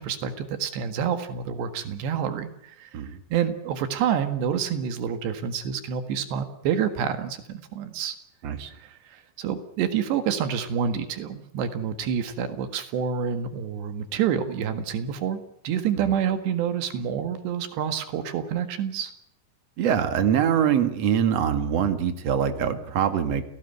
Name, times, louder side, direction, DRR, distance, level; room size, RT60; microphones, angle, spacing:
voice 1, 0.0-3.0 3.3-8.2 8.7-19.1, right 8 dB, 80° right, 9 dB, 3.9 m, -28 dB
voice 2, 19.8-23.4, right 8 dB, 50° right, 9 dB, 2.3 m, -23 dB
29.0 x 18.0 x 8.0 m, 0.71 s
omnidirectional pair, 4.9 m